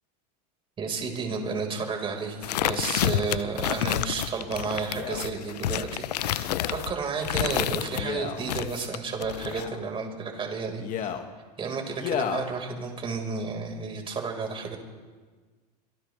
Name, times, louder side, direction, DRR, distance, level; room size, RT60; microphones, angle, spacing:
voice 1, 0.8-11.2 11.6-14.8, right 5 dB, 25° right, 2 dB, 4.8 m, -32 dB
sound 1, 2.4-8.0 8.4-9.7, left 13 dB, 85° left, 0.8 m, -29 dB
Male speech man speaking, 4.9-5.3 6.4-6.8 7.9-8.4 9.4-9.8 10.8-11.2 12.0-12.5 13.2-13.3, left 8 dB, 40° left, 2.0 m, -33 dB
29.0 x 26.0 x 3.4 m, 1.4 s
hypercardioid pair, 110°, 20 cm